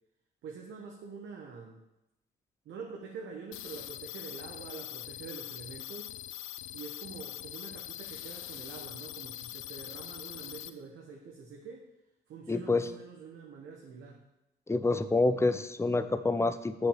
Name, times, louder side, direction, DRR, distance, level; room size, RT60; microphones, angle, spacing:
voice 1, 0.4-1.8 2.6-6.1 6.7-11.9 12.3-14.2, right 5 dB, 75° right, 0 dB, 1.4 m, -46 dB
sound 1, 3.5-10.7, left 13 dB, 85° left, 0.5 m, -43 dB
voice 2, 12.5-12.9 14.7-16.9, left 3 dB, 15° left, 11 dB, 0.7 m, -27 dB
7.3 x 5.7 x 7.3 m, 0.90 s
cardioid pair, 90°, 20 cm